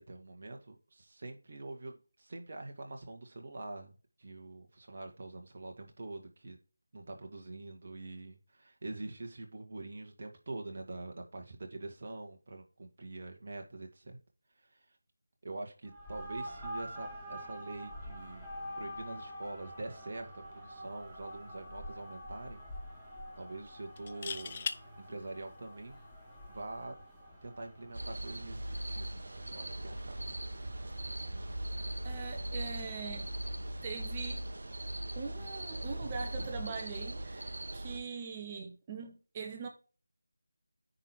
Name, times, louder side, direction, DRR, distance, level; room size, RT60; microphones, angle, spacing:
voice 1, 0.0-6.6 6.9-14.2 14.6-14.8 15.4-18.5 18.8-22.6 23.4-24.7 25.0-26.0 26.5-26.9 27.4-29.2 29.5-30.4, right 2 dB, 45° right, 2.2 m, -45 dB
sound 1, 15.8-33.8, equal, ahead, 2.3 m, -48 dB
sound 2, 21.1-21.4 21.7-21.8 24.0-24.8 26.6-26.8, left 6 dB, 30° left, 0.6 m, -38 dB
Noise at night in the countryside, 27.9-38.0, right 1 dB, 65° right, 1.3 m, -39 dB
voice 2, 32.0-33.3 33.8-34.4 35.1-39.7, right 5 dB, 20° right, 1.3 m, -42 dB
9.9 x 4.0 x 4.6 m
figure-of-eight pair, 165°, 0 cm